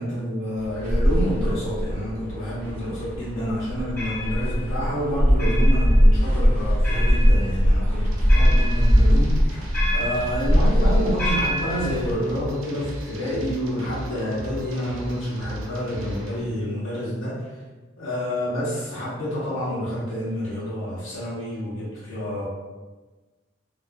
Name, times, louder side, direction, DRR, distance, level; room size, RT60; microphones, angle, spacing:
voice 1, 0.0-9.7 9.9-17.5 18.0-22.5, equal, 80° left, -8 dB, 0.9 m, -28 dB
sound 1, 0.6-12.1, equal, 10° left, 0.8 m, -20 dB
sound 2, 8.1-16.4, equal, 80° right, 0.5 m, -37 dB
2.4 x 2.3 x 2.3 m, 1.3 s
head